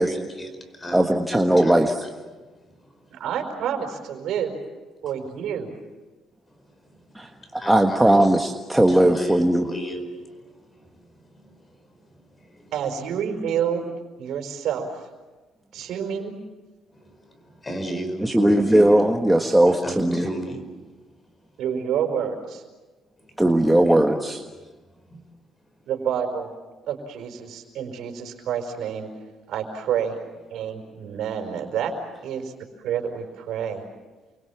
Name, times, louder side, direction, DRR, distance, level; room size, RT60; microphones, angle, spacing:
voice 1, 0.0-3.3 6.5-8.4 8.9-12.7 15.7-15.9 16.9-19.1 19.7-21.1 21.4-21.6 23.2-23.4 23.8-24.3 24.6-25.3 25.7-25.8 27.2-27.3 30.5-30.7, right 1 dB, 20° left, 7 dB, 5.0 m, -37 dB
voice 2, 0.9-1.9 7.1-9.6 18.2-20.2 23.4-24.4, right 1 dB, 5° right, 2 dB, 1.6 m, -18 dB
voice 3, 3.1-4.5 5.0-5.7 12.7-13.8 14.2-14.9 15.7-16.4 21.6-22.6 25.8-26.5 26.9-29.1 29.5-30.2 30.5-31.9 32.2-32.5 32.8-33.8, right 8 dB, 75° right, 5 dB, 4.9 m, -28 dB
29.5 x 23.5 x 7.3 m, 1.2 s
cardioid pair, 115°, 0 cm